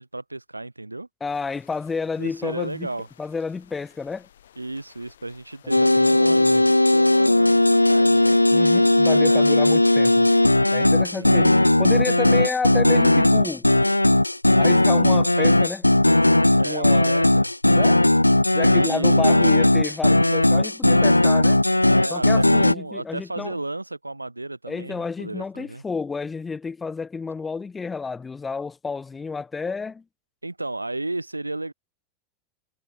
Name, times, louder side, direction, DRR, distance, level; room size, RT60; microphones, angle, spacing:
voice 1, 0.0-1.1 2.2-3.1 4.6-8.4 8.7-9.7 10.8-11.3 16.6-17.5 18.7-19.5 21.9-25.8 30.4-31.7, right 2 dB, 85° right, 1.0 m, -33 dB
voice 2, 1.2-2.9 3.2-4.3 5.6-6.7 8.5-10.3 10.7-13.7 14.6-15.9 16.6-17.2 17.7-18.0 18.5-21.6 22.1-23.6 24.7-30.0, left 4 dB, 15° left, 1.5 m, -30 dB
sound 1, 1.3-6.7, left 10 dB, 65° left, 7.5 m, -56 dB
sound 2, 5.7-22.7, left 1 dB, 85° left, 0.6 m, -17 dB
figure-of-eight pair, 85°, 0 cm